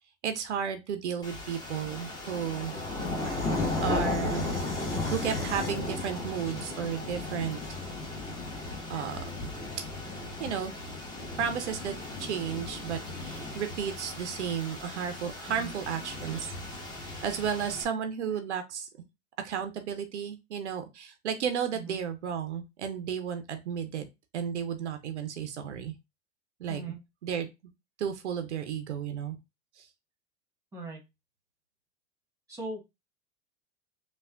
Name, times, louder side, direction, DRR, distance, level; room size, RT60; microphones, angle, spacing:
voice 1, 0.2-2.7 3.8-4.6 5.1-7.6 8.9-9.3 10.4-10.7 11.2-11.9 12.2-16.5 16.8-18.9 19.4-24.0 24.3-25.9 26.6-26.8 27.2-27.5 28.0-29.4 29.8-29.9, right 8 dB, 80° right, 8 dB, 0.6 m, -33 dB
sound 1, 1.2-17.8, left 2 dB, 10° left, 1.0 m, -35 dB
sound 2, 3.2-8.2, left 1 dB, 90° left, 1.1 m, -46 dB
voice 2, 32.5-32.8, right 2 dB, 10° right, 1 dB, 1.3 m, -39 dB
3.3 x 2.3 x 2.3 m, 0.23 s
hypercardioid pair, 90°, 34 cm